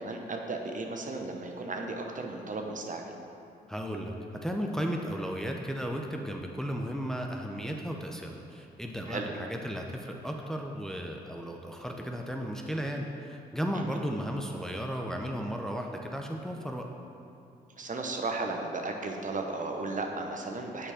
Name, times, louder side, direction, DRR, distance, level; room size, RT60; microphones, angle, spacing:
voice 1, 0.0-3.1 9.1-9.2 13.7-14.0 17.8-20.9, right 3 dB, 45° right, 2 dB, 0.9 m, -35 dB
voice 2, 3.7-16.9, equal, 5° left, 2 dB, 0.7 m, -35 dB
7.4 x 4.4 x 5.0 m, 2.7 s
supercardioid pair, 50°, 19 cm